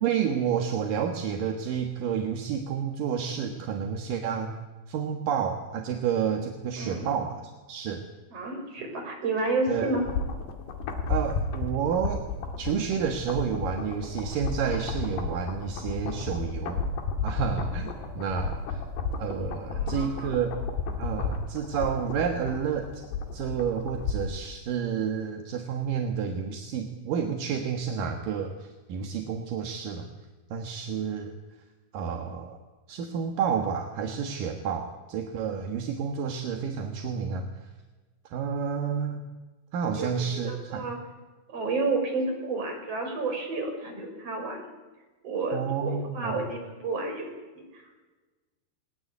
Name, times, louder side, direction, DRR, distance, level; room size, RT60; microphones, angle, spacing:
voice 1, 0.0-4.6 4.9-8.0 9.7-9.9 11.1-12.3 12.6-16.8 17.2-18.8 19.2-20.6 21.0-23.0 23.3-30.1 30.5-31.3 31.9-32.6 32.9-37.7 38.3-39.2 39.7-40.9 45.5-46.4, right 7 dB, 60° right, 4 dB, 2.6 m, -30 dB
voice 2, 6.8-7.1 8.3-10.0 19.7-20.3 39.9-41.0 41.5-44.6 45.2-48.0, right 3 dB, 35° right, 2 dB, 6.3 m, -31 dB
sound 1, 9.8-24.5 24.8-24.9, left 4 dB, 65° left, 4.0 m, -33 dB
20.5 x 19.5 x 9.7 m, 1.2 s
omnidirectional pair, 5.3 m